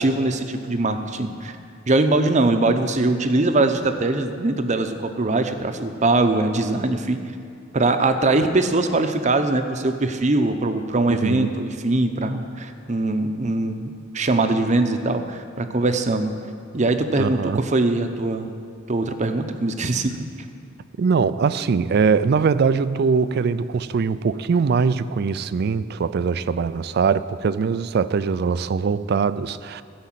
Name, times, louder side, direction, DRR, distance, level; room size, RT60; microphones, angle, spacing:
voice 1, 0.0-1.5 1.9-7.2 7.7-16.3 16.7-18.5 18.9-20.1, right 2 dB, 40° right, 0.7 m, -22 dB
voice 2, 11.1-11.5 17.2-17.6 21.0-29.8, right 5 dB, 55° right, 0.4 m, -22 dB
15.5 x 5.2 x 7.5 m
head